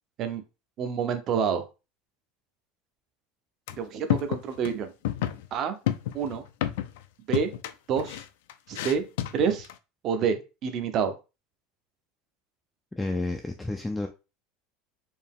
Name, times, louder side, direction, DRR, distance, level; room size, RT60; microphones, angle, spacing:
voice 1, 0.8-1.6 3.8-4.9 5.5-5.8 6.1-6.4 7.3-7.5 7.9-8.2 8.7-9.0 9.3-9.7 10.0-11.1, right 7 dB, 30° right, 9 dB, 0.6 m, -27 dB
sound 1, 3.7-3.8 4.1-4.8 5.0-5.5 5.9-7.1 7.3-9.7, left 12 dB, 85° left, 0.4 m, -30 dB
voice 2, 12.9-14.1, left 2 dB, 5° left, 3 dB, 0.3 m, -30 dB
4.4 x 2.7 x 3.5 m, 0.29 s
cardioid pair, 175°, 0 cm